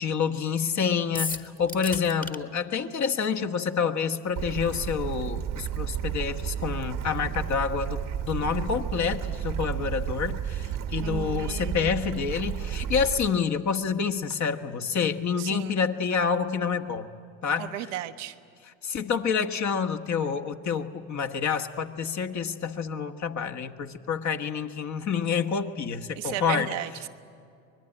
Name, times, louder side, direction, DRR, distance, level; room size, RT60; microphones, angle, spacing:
voice 1, 0.0-17.1 17.4-17.7 18.6-26.7, left 6 dB, 50° left, 6 dB, 1.5 m, -28 dB
sound 1, 1.1-2.4, left 3 dB, 20° left, 1.5 m, -33 dB
Bird / Stream, 4.4-13.3, right 9 dB, 60° right, 1.2 m, -32 dB
voice 2, 11.0-12.0 15.4-15.8 17.6-18.3 26.2-27.1, right 12 dB, 85° right, 7 dB, 1.0 m, -35 dB
24.5 x 20.5 x 9.0 m, 2.4 s
hypercardioid pair, 55°, 37 cm